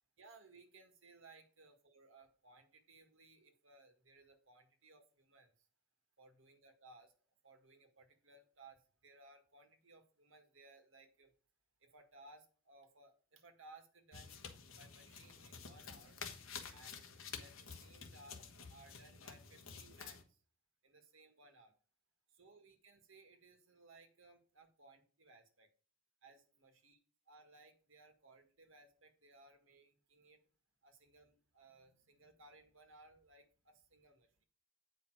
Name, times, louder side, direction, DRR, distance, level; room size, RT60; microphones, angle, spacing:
voice 1, 0.2-5.7 6.2-7.1 7.4-11.3 11.8-14.4 14.7-16.2 16.7-17.0 17.4-20.4 20.8-21.7 22.3-25.7 26.2-27.0 27.3-30.5 30.8-34.4, right 2 dB, 65° right, 6 dB, 1.8 m, -62 dB
sound 1, 14.1-20.2, left 6 dB, 75° left, 1.3 m, -51 dB
8.5 x 5.2 x 4.7 m, 0.40 s
head